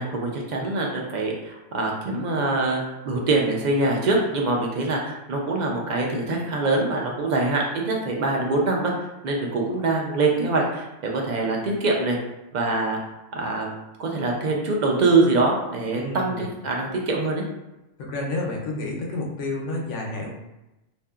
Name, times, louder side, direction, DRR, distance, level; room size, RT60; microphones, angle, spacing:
voice 1, 0.0-8.9 9.2-10.9 11.1-12.2 12.5-13.0 13.3-17.4, right 3 dB, 65° right, -1 dB, 0.4 m, -24 dB
voice 2, 15.9-16.5 18.0-20.3, left 2 dB, 80° left, -1 dB, 0.9 m, -30 dB
2.7 x 2.5 x 2.3 m, 0.96 s
omnidirectional pair, 1.2 m